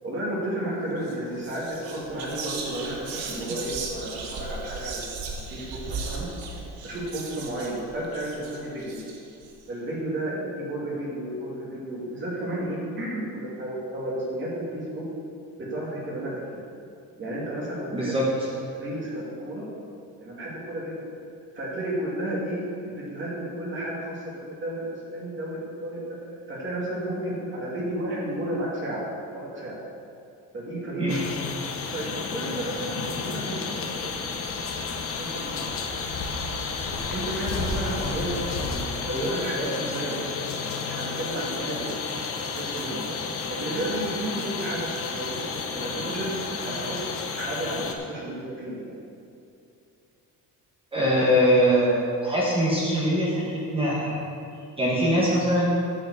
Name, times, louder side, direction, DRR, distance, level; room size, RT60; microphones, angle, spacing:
voice 1, 0.0-6.3 6.8-9.0 9.7-15.0 15.6-16.6 17.2-18.2 18.7-19.6 20.2-20.9 21.5-26.2 26.5-29.1 29.3-29.8 30.5-31.4 31.8-34.3 34.9-35.7 37.1-42.0 42.4-43.2 43.5-47.0 47.4-48.9, right 1 dB, 35° right, -5 dB, 2.4 m, -32 dB
Whispering, 1.0-1.2 1.4-9.5, right 4 dB, 85° right, 1.5 m, -37 dB
voice 2, 17.9-18.2 31.0-31.2 50.9-54.2 54.8-55.7, equal, 15° right, -6 dB, 1.5 m, -22 dB
sound 1, 31.1-47.9, left 5 dB, 40° left, 0.9 m, -32 dB
sound 2, 33.9-38.9, left 2 dB, 85° left, 1.8 m, -35 dB
8.8 x 7.4 x 6.9 m, 2.6 s
cardioid pair, 175°, 35 cm